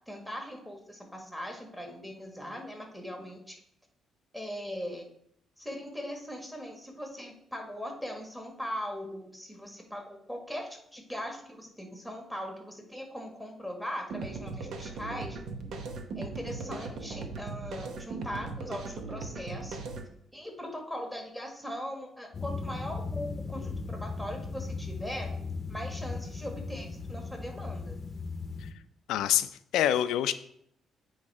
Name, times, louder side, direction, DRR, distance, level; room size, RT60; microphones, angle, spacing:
voice 1, 0.1-3.6 4.3-5.1 5.6-15.4 16.1-19.8 20.3-25.3 25.7-28.0, equal, 5° right, 2 dB, 1.6 m, -40 dB
sound 1, 14.1-20.1, right 4 dB, 70° right, 0.8 m, -39 dB
sound 2, 22.3-28.7, left 4 dB, 40° left, 0.7 m, -37 dB
voice 2, 29.1-30.3, left 11 dB, 90° left, 12 dB, 0.4 m, -26 dB
8.5 x 3.2 x 4.8 m, 0.70 s
cardioid pair, 90°, 0 cm